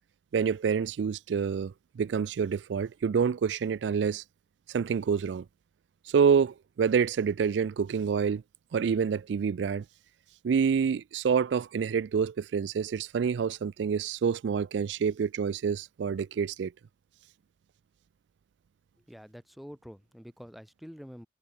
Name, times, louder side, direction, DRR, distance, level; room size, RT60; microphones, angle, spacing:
voice 1, 0.3-4.2 4.7-5.4 6.1-8.4 8.7-9.8 10.4-16.7, right 6 dB, 75° right, 0.3 m, -27 dB
voice 2, 19.1-21.3, equal, ahead, 1.3 m, -47 dB
head